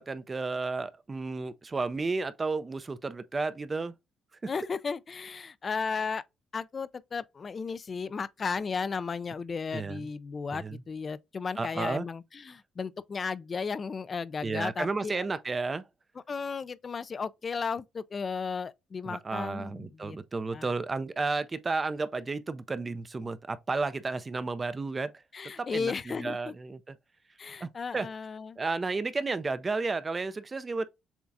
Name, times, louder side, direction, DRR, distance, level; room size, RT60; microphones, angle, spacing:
voice 1, 0.0-3.9 9.7-10.1 10.5-10.8 11.6-12.1 14.4-15.8 19.0-25.1 25.6-27.0 27.6-28.1 28.6-30.8, right 3 dB, 30° right, 0.4 m, -32 dB
voice 2, 4.5-6.2 6.5-15.2 16.3-20.2 20.5-20.7 25.3-26.5 27.4-28.6, left 5 dB, 40° left, 0.3 m, -35 dB
7.0 x 2.4 x 2.6 m
cardioid pair, 90°, 0 cm